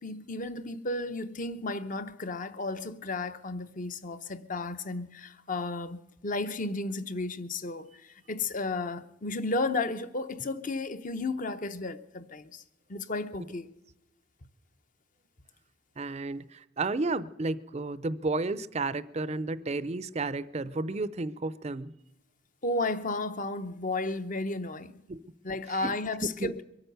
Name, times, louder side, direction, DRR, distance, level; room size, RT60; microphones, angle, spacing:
voice 1, 0.0-12.6 12.9-13.7 22.6-24.9 25.4-26.6, left 2 dB, 40° left, 0.8 m, -33 dB
voice 2, 16.0-21.9 25.1-25.2 25.8-25.9 26.2-26.5, right 3 dB, 35° right, 0.5 m, -32 dB
23.0 x 9.0 x 6.7 m
head